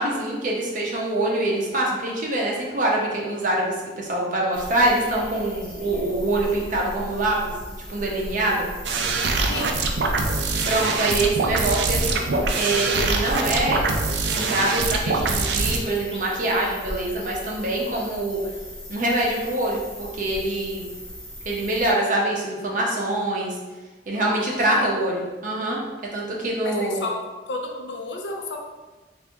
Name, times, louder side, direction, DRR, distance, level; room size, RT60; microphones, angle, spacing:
voice 1, 0.0-7.5 7.9-8.7 10.6-13.8 14.3-18.4 18.9-20.9 21.4-23.5 24.1-25.8 26.1-27.0, right 1 dB, 50° right, -3 dB, 0.8 m, -24 dB
sound 1, 4.5-21.9, equal, 5° left, 0.9 m, -38 dB
sound 2, 8.8-15.8, right 3 dB, 70° right, 0.4 m, -23 dB
voice 2, 9.5-9.8 24.2-25.2 26.6-27.1 27.5-28.6, left 2 dB, 80° left, 1 dB, 0.6 m, -32 dB
3.3 x 2.5 x 3.4 m, 1.2 s
head